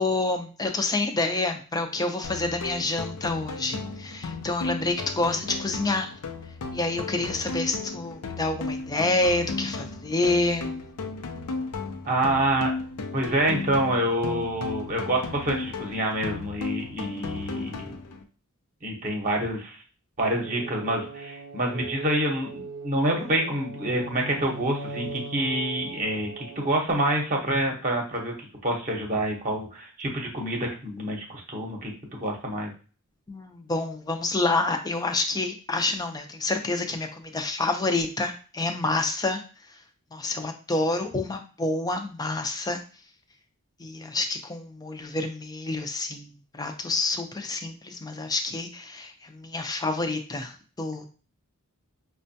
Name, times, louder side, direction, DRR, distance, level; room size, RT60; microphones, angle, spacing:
voice 1, 0.0-6.1 6.7-10.8 33.3-39.4 40.1-42.8 43.8-51.1, left 2 dB, 15° left, 5 dB, 0.4 m, -28 dB
sound 1, 2.2-18.2, left 3 dB, 90° left, 0.5 m, -35 dB
voice 2, 12.0-12.7 13.1-17.9 18.8-19.8 20.2-31.9 32.2-32.7, right 1 dB, 35° right, 0 dB, 0.8 m, -27 dB
sound 2, 20.2-26.8, right 2 dB, 85° right, 0.5 m, -39 dB
5.3 x 2.2 x 2.6 m, 0.37 s
head